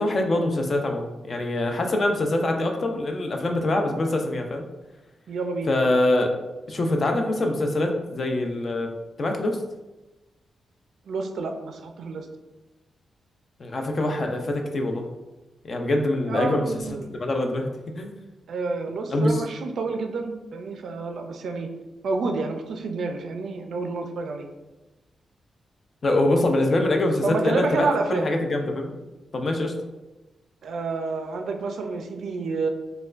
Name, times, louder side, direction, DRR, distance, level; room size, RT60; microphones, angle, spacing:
voice 1, 0.0-4.6 5.7-6.4 6.7-8.9 9.2-9.6 13.6-15.0 15.6-17.7 18.0-18.1 19.1-19.4 26.0-28.9 29.3-29.7, left 1 dB, 40° left, 3 dB, 0.4 m, -24 dB
voice 2, 5.3-5.7 11.1-12.3 16.3-17.1 18.5-21.7 22.0-24.5 27.2-28.3 30.6-32.7, right 3 dB, 70° right, 4 dB, 0.4 m, -29 dB
4.3 x 2.2 x 2.4 m, 1.1 s
wide cardioid pair, 150°, 0 cm